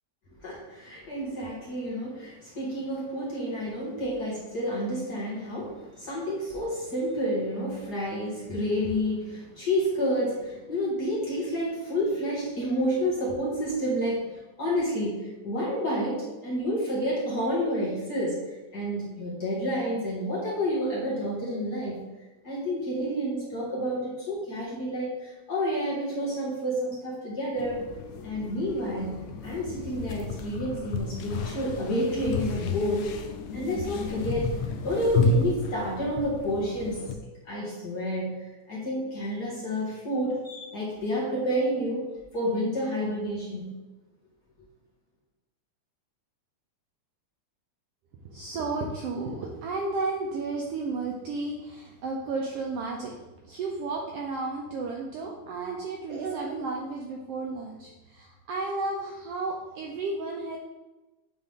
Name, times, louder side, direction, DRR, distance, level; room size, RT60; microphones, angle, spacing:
voice 1, 0.4-22.0 22.4-27.9 28.2-29.2 29.4-33.1 33.5-34.5 34.8-37.1 37.5-42.0 42.3-43.7, equal, 40° left, -6 dB, 1.8 m, -29 dB
sound 1, 27.6-37.2, left 4 dB, 80° left, 2.0 m, -32 dB
voice 2, 48.2-53.2 53.4-60.6, right 3 dB, 80° right, 0 dB, 1.4 m, -33 dB
8.1 x 3.7 x 3.6 m, 1.1 s
omnidirectional pair, 3.3 m